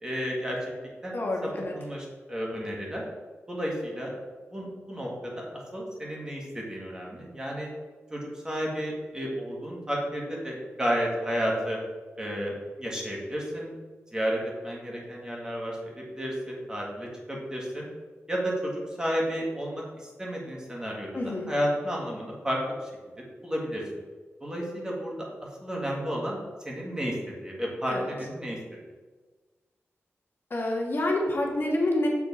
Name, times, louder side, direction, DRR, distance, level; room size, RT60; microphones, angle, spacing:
voice 1, 0.0-0.6 1.0-1.2 1.7-3.0 3.5-4.1 4.5-5.4 5.7-7.7 8.1-11.8 12.2-13.7 14.1-17.9 18.3-22.9 23.4-23.8 24.4-25.3 25.6-27.2 27.4-28.6, equal, 15° right, -3 dB, 1.6 m, -32 dB
voice 2, 1.1-1.7 21.1-21.5 27.9-28.0 30.5-32.1, left 1 dB, 50° left, -1 dB, 1.2 m, -27 dB
7.1 x 3.8 x 5.5 m, 1.4 s
wide cardioid pair, 150°, 5 cm